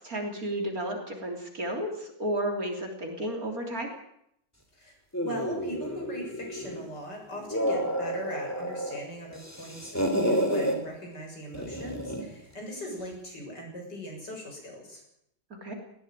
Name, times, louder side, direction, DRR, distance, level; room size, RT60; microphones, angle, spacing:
voice 1, 0.0-3.9 15.6-15.7, right 1 dB, 45° right, 2 dB, 3.9 m, -32 dB
voice 2, 4.8-15.0, equal, 55° left, 0 dB, 7.6 m, -40 dB
sound 1, 5.1-6.9 7.3-9.0 9.3-10.8 11.5-12.3, equal, 5° left, 3.6 m, -30 dB
19.0 x 16.5 x 9.2 m, 0.76 s
omnidirectional pair, 2.1 m